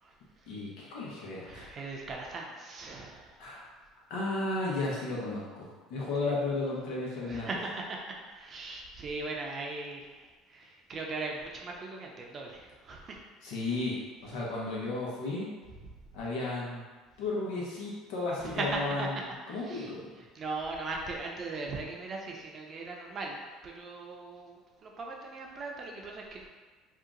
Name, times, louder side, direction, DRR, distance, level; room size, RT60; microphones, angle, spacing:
voice 1, 0.5-1.7 3.4-3.6 4.1-7.5 13.4-15.5 16.1-16.9 17.2-19.1 19.5-20.1, left 2 dB, 80° left, -5 dB, 1.0 m, -34 dB
voice 2, 1.4-3.5 6.2-6.3 7.2-13.2 18.4-19.1 19.5-19.9 20.3-26.5, right 3 dB, 40° right, 0 dB, 0.6 m, -39 dB
2.8 x 2.4 x 3.8 m, 1.4 s
supercardioid pair, 95°, 0 cm